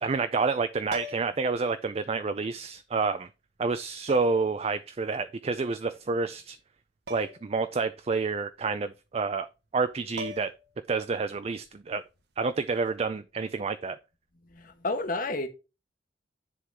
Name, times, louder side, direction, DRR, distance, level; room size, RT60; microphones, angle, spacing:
voice 1, 0.0-3.3 3.6-6.6 7.1-9.5 9.7-10.5 10.9-12.0 12.4-14.0, right 4 dB, 35° right, 0.4 m, -29 dB
sound 1, 0.9-1.5 2.8-2.9 4.1-4.5 7.1-7.5 7.8-7.9 9.7-9.8 10.2-10.7 12.7-12.9, left 1 dB, 60° right, 1.0 m, -40 dB
voice 2, 14.5-15.5, left 2 dB, 50° left, 1.2 m, -31 dB
10.0 x 3.9 x 4.6 m
head